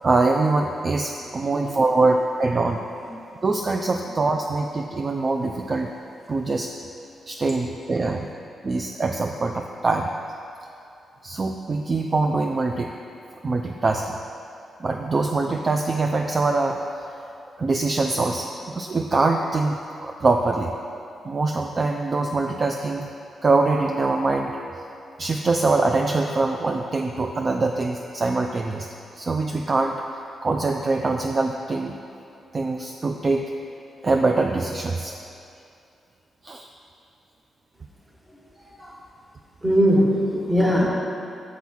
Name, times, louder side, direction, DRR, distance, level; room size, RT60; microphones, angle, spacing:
voice 1, 0.0-2.8 3.4-5.9 6.3-6.7 7.3-8.3 8.6-10.1 11.2-12.9 13.4-14.2 14.8-17.2 17.6-20.7 21.2-23.1 23.4-24.6 25.2-28.9 29.1-32.0 32.5-33.5 34.0-35.1 36.4-36.7, right 3 dB, 40° right, 3 dB, 0.3 m, -23 dB
voice 2, 38.3-39.0 39.6-40.9, equal, 15° right, -2 dB, 1.3 m, -21 dB
6.0 x 4.7 x 5.5 m, 2.6 s
cardioid pair, 70°, 0 cm